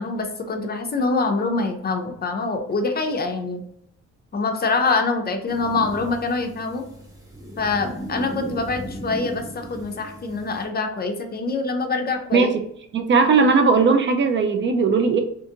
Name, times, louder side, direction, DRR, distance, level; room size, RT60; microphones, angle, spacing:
voice 1, 0.0-3.6 4.3-6.8 7.6-12.5, left 3 dB, 30° left, 5 dB, 0.5 m, -25 dB
sound 1, 5.5-10.6, right 1 dB, 10° right, 0.7 m, -36 dB
voice 2, 12.9-15.2, right 4 dB, 40° right, 6 dB, 0.4 m, -18 dB
2.5 x 2.4 x 2.7 m, 0.71 s
cardioid pair, 90°, 30 cm